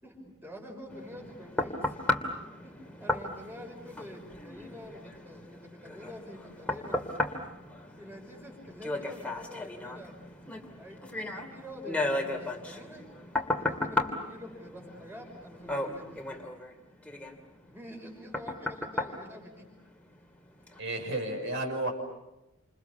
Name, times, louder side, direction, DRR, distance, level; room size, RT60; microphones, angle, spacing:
voice 1, 0.0-2.0 2.6-7.0 7.6-7.7 8.0-10.1 10.8-13.1 13.6-16.2 17.7-19.6, left 1 dB, 10° right, 0 dB, 5.8 m, -47 dB
sound 1, 0.9-20.2 20.7-20.8, left 2 dB, 5° left, 2.7 m, -35 dB
voice 2, 20.8-21.9, right 1 dB, 60° right, 2 dB, 6.3 m, -32 dB
29.0 x 28.0 x 7.1 m, 0.97 s
head